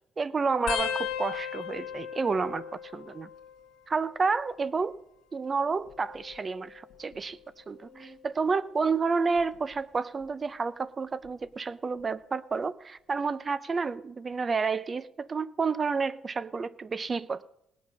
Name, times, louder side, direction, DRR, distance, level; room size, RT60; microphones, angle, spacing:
voice 1, 0.2-2.6 2.9-3.3 3.9-5.0 5.3-7.4 7.7-17.4, right 4 dB, 25° right, 18 dB, 0.5 m, -30 dB
sound 1, 0.7-3.8 4.1-4.7 5.7-7.2 7.8-8.2 9.4-9.7 11.2-11.3, left 9 dB, 65° left, 1.9 m, -37 dB
18.0 x 8.4 x 6.3 m, 0.77 s
cardioid pair, 140°, 0 cm